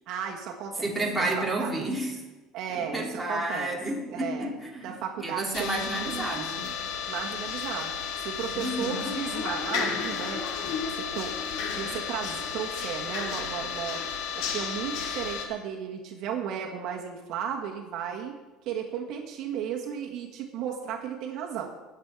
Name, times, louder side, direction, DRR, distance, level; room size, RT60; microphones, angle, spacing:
voice 1, 0.1-0.9 1.1-1.7 2.5-3.8 4.1-4.5 4.8-6.7 7.1-11.3 11.6-14.0 14.3-18.3 18.6-21.7, right 8 dB, 55° right, 1 dB, 1.7 m, -35 dB
voice 2, 0.8-2.1 2.7-4.9 5.2-6.7 8.5-9.1, right 1 dB, 5° right, -3 dB, 2.7 m, -31 dB
sound 1, 5.5-15.5, left 6 dB, 65° left, 2.4 m, -32 dB
19.5 x 7.3 x 4.8 m, 1.2 s
cardioid pair, 140°, 0 cm